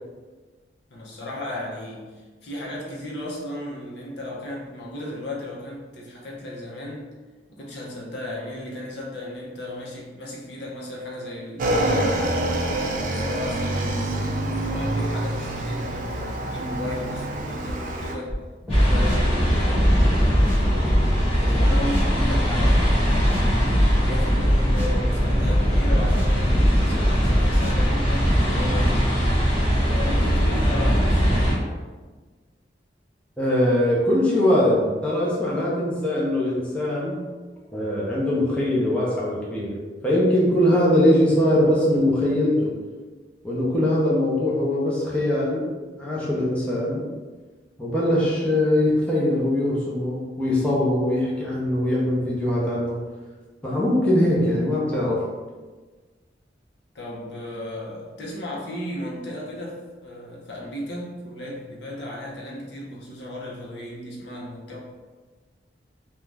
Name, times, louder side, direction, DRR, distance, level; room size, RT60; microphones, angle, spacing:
voice 1, 0.9-7.1 7.5-12.2 13.2-18.3 18.6-31.5 56.9-64.8, left 1 dB, 70° left, -3 dB, 0.6 m, -35 dB
Motorcycle / Engine, 11.6-18.2, right 1 dB, 45° right, 0.3 m, -26 dB
sound 1, 18.3-18.4 18.7-19.2 19.7-21.2 21.5-22.0 22.6-24.0 24.4-24.9 25.4-26.9 27.2-27.7 28.3-28.4, equal, 10° right, 0.9 m, -22 dB
sound 2, 18.7-31.5, equal, 35° left, 0.9 m, -21 dB
voice 2, 33.4-37.2 37.7-39.8 40.0-42.7 43.4-45.6 46.0-47.0 47.8-53.0 53.6-55.2, left 1 dB, 5° left, -6 dB, 0.5 m, -21 dB
2.5 x 2.2 x 3.2 m, 1.3 s
head